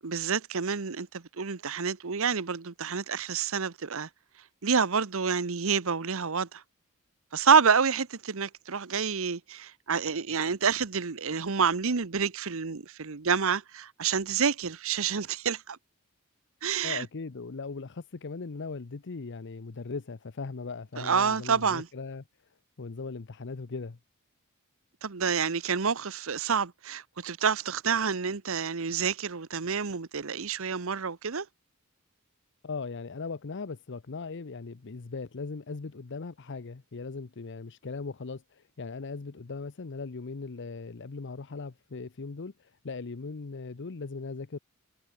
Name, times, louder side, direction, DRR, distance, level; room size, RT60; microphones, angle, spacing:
voice 1, 0.0-4.1 4.6-6.6 7.3-15.8 16.6-17.1 21.0-21.9 25.0-31.5, right 6 dB, 70° right, 1.0 m, -28 dB
voice 2, 16.8-22.2 22.8-24.0 32.6-44.6, left 4 dB, 55° left, 0.7 m, -39 dB
head